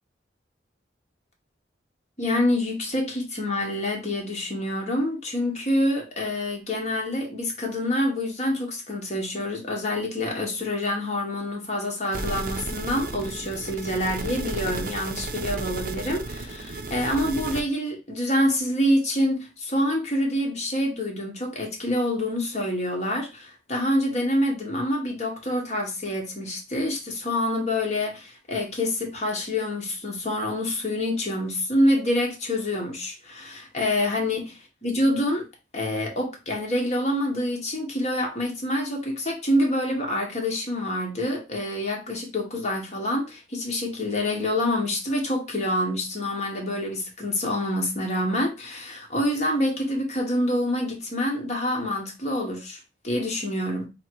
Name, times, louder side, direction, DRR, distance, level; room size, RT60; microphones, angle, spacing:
voice 1, 2.2-34.5 34.8-35.5 35.7-53.9, left 1 dB, 40° left, 1.2 m, -26 dB
sound 1, 12.1-17.6, right 2 dB, 50° right, 0.5 m, -33 dB
3.1 x 2.9 x 4.5 m
head